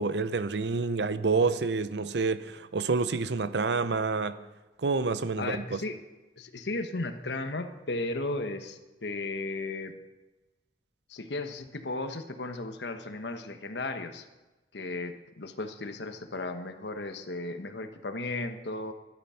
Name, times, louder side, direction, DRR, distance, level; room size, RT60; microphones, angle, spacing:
voice 1, 0.0-4.4 4.8-5.8, right 4 dB, 75° right, 0.6 m, -28 dB
voice 2, 5.4-6.0 6.4-9.9 11.1-14.3 14.7-18.9, left 2 dB, 80° left, 1.2 m, -35 dB
12.5 x 12.0 x 5.7 m
head